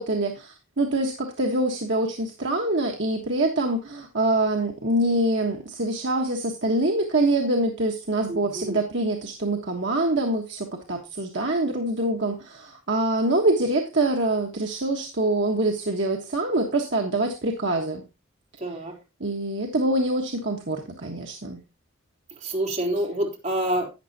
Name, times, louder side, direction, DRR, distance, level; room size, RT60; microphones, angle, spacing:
voice 1, 0.0-18.0 19.2-21.6, right 2 dB, 60° right, 1 dB, 1.4 m, -25 dB
voice 2, 8.3-8.8 18.6-18.9 22.3-23.9, right 1 dB, 35° right, -1 dB, 3.6 m, -27 dB
12.0 x 9.3 x 2.8 m, 0.26 s
head